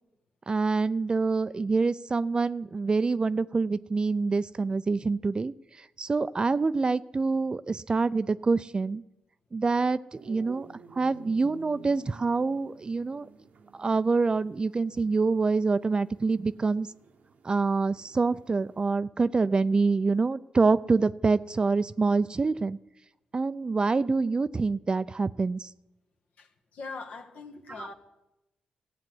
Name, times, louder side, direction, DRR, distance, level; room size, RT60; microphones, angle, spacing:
voice 1, 0.5-9.0 9.5-10.7 10.9-13.3 13.8-16.9 17.4-22.8 23.3-25.7 27.7-27.9, right 4 dB, 35° right, 0.4 m, -26 dB
sound 1, 10.1-18.9, right 6 dB, 65° right, 0.9 m, -53 dB
voice 2, 26.4-27.9, left 4 dB, 70° left, 1.6 m, -42 dB
14.0 x 9.3 x 7.8 m
cardioid pair, 65°, 3 cm